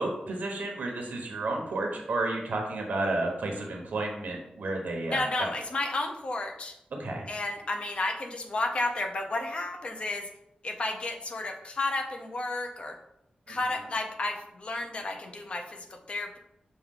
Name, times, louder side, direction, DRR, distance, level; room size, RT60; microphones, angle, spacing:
voice 1, 0.0-5.5 7.0-7.2 13.5-13.6, right 2 dB, 80° right, 1 dB, 0.9 m, -31 dB
voice 2, 5.1-6.7 7.3-10.3 10.6-13.0 13.5-16.4, left 2 dB, 40° left, 4 dB, 0.6 m, -32 dB
6.2 x 2.3 x 3.6 m, 0.81 s
wide cardioid pair, 165°, 3 cm